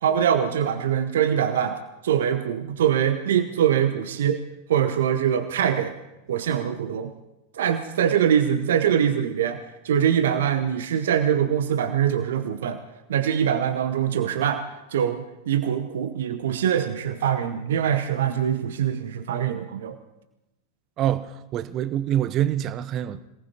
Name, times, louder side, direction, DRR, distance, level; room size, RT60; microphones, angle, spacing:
voice 1, 0.0-4.4 4.7-5.9 6.3-7.1 7.5-12.8 13.1-14.6 14.9-20.0, right 9 dB, 60° right, 0.8 m, -23 dB
voice 2, 21.0-23.2, right 11 dB, 35° right, 0.6 m, -25 dB
27.0 x 18.5 x 2.8 m
figure-of-eight pair, 90°, 0 cm